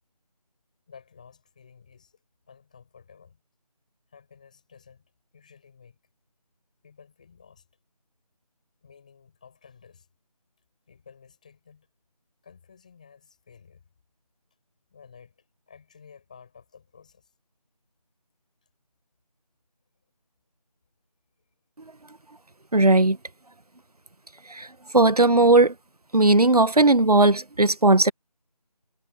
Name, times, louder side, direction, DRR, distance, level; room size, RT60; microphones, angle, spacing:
voice 1, 0.9-2.2 2.5-3.4 4.1-6.0 6.8-7.7 8.8-10.1 10.9-11.9 12.4-13.9 14.9-17.3, left 6 dB, 10° left, 5.7 m, -53 dB
voice 2, 22.7-23.2 24.5-24.7 24.9-25.7 26.1-28.1, right 2 dB, 65° right, 1.3 m, -17 dB
figure-of-eight pair, 175°, 21 cm